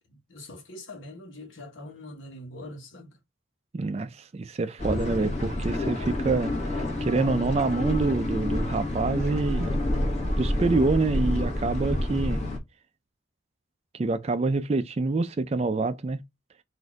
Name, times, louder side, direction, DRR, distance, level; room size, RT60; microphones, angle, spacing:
voice 1, 0.1-3.1, left 1 dB, 80° left, 1.2 m, -43 dB
voice 2, 3.7-9.7 10.3-12.4 13.9-16.2, right 3 dB, 35° right, 0.3 m, -26 dB
sound 1, 4.8-12.6, left 1 dB, 35° left, 1.5 m, -28 dB
4.2 x 2.6 x 4.6 m
head